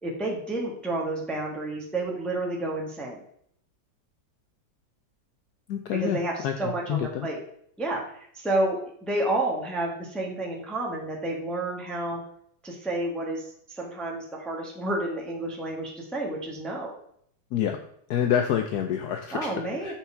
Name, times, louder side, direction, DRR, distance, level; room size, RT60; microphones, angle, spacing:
voice 1, 0.0-3.2 5.9-7.4 7.8-12.2 12.6-16.9 19.3-19.9, right 2 dB, ahead, -1 dB, 1.3 m, -30 dB
voice 2, 5.7-7.3 17.5-17.8 18.1-19.5 19.8-19.9, left 9 dB, 70° left, 6 dB, 0.9 m, -27 dB
6.9 x 6.2 x 4.5 m, 0.66 s
omnidirectional pair, 2.3 m